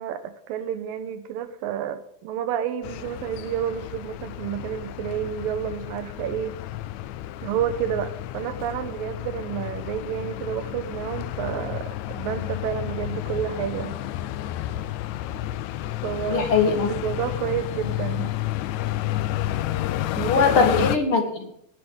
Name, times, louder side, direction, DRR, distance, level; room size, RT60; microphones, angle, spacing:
voice 1, 0.0-6.6 7.4-13.9 16.0-16.4 16.9-18.3 20.2-20.4, right 9 dB, 85° right, 11 dB, 2.7 m, -30 dB
sound 1, 2.8-21.0, left 14 dB, 80° left, 1.7 m, -31 dB
voice 2, 16.3-16.9 20.3-21.5, left 5 dB, 50° left, 5 dB, 2.0 m, -21 dB
17.0 x 11.0 x 3.8 m, 0.69 s
omnidirectional pair, 4.0 m